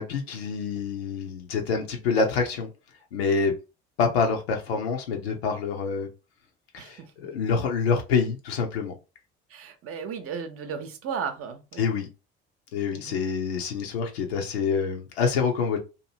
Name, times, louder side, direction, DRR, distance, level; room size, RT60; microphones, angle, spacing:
voice 1, 0.0-2.7 3.1-3.5 4.0-6.1 6.7-8.9 11.8-12.1 12.7-15.8, left 5 dB, 80° left, 0.6 m, -26 dB
voice 2, 6.8-7.1 9.5-11.9 12.9-13.2, right 6 dB, 45° right, 0.7 m, -35 dB
2.7 x 2.6 x 2.7 m
figure-of-eight pair, 55°, 31 cm